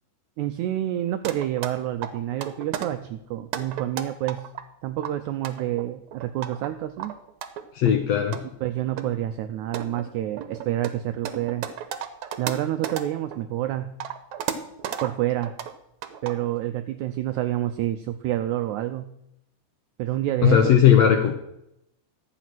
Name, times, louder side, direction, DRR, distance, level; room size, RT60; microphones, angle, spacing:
voice 1, 0.4-4.5 4.8-7.2 8.6-11.7 12.4-14.0 15.0-15.5 16.2-19.1 20.0-20.7, right 13 dB, 90° right, 9 dB, 1.7 m, -28 dB
sound 1, 1.3-1.7 2.0-2.9 3.4-4.6 5.0-6.7 7.0-7.9 8.3-8.4 9.0-9.1 9.5-13.4 13.7-15.1 15.4-15.7 16.0-16.4, right 9 dB, 70° right, 1.8 m, -33 dB
voice 2, 7.7-8.5 20.4-21.3, left 9 dB, 75° left, 5 dB, 1.6 m, -18 dB
12.0 x 8.2 x 6.1 m, 0.80 s
omnidirectional pair, 4.0 m